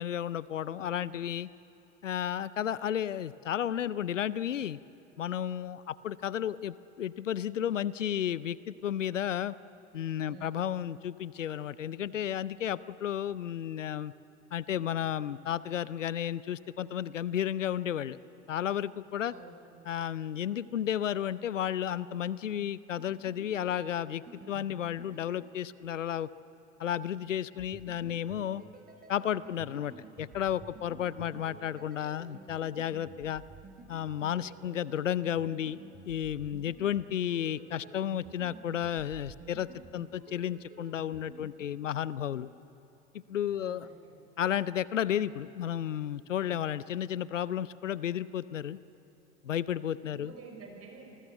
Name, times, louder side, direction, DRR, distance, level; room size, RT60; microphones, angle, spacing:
voice 1, 0.0-1.5 2.0-4.8 5.2-9.5 9.9-14.1 14.5-18.2 18.5-19.3 19.8-26.3 26.8-28.6 29.1-33.4 33.9-35.8 36.1-42.5 43.3-43.9 44.4-48.8 49.4-50.3, left 10 dB, 90° left, 19 dB, 0.6 m, -33 dB
voice 2, 10.2-10.6 19.3-19.9 31.3-31.4 43.6-44.1 50.1-51.2, right 4 dB, 40° right, 3 dB, 6.4 m, -50 dB
sound 1, 23.0-26.3 27.6-41.5, right 3 dB, 25° right, 4.7 m, -52 dB
28.5 x 20.0 x 7.9 m, 2.9 s
hypercardioid pair, 70°, 36 cm